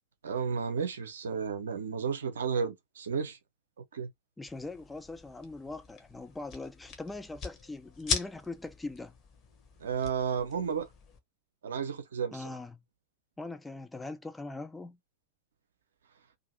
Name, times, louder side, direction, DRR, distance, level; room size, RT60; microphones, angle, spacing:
voice 1, 0.2-3.4 3.9-4.1 9.8-10.9 11.6-12.4, right 6 dB, 65° right, 0.6 m, -32 dB
voice 2, 4.4-9.1 12.3-12.8 13.4-15.0, left 3 dB, 10° left, 0.3 m, -41 dB
sound 1, 4.5-11.2, left 4 dB, 30° left, 0.8 m, -40 dB
2.6 x 2.5 x 2.5 m
figure-of-eight pair, 90°, 0 cm